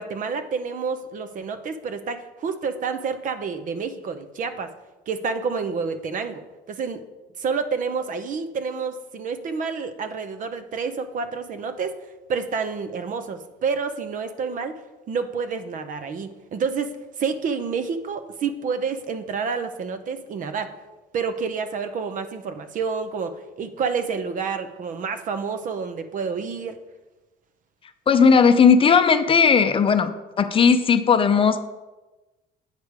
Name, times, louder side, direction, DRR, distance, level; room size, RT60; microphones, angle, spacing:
voice 1, 0.0-4.7 5.1-7.0 7.4-12.0 12.3-14.7 15.1-20.8 21.1-26.8, right 5 dB, 50° right, 10 dB, 0.7 m, -29 dB
voice 2, 28.1-31.6, left 6 dB, 30° left, 9 dB, 0.5 m, -17 dB
8.3 x 4.9 x 4.8 m, 1.1 s
cardioid pair, 110°, 17 cm